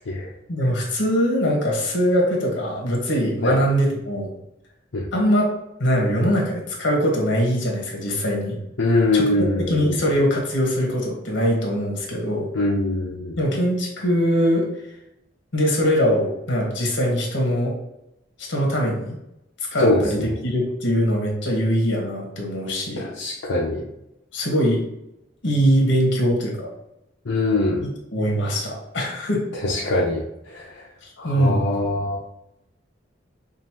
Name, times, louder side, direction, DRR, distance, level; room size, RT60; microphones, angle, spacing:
voice 1, 0.5-4.3 5.1-5.4 5.8-8.6 9.1-9.3 9.7-12.5 13.4-14.7 15.5-17.7 18.4-19.2 19.7-23.1 24.3-24.8 25.4-26.7 27.8-29.4 31.2-31.7, equal, 65° left, -1 dB, 1.3 m, -22 dB
voice 2, 8.8-10.0 12.5-13.4 19.8-20.3 23.0-23.9 27.3-27.9 29.6-30.8 31.2-32.2, left 2 dB, 80° left, -3 dB, 0.6 m, -23 dB
5.4 x 2.5 x 2.9 m, 0.87 s
head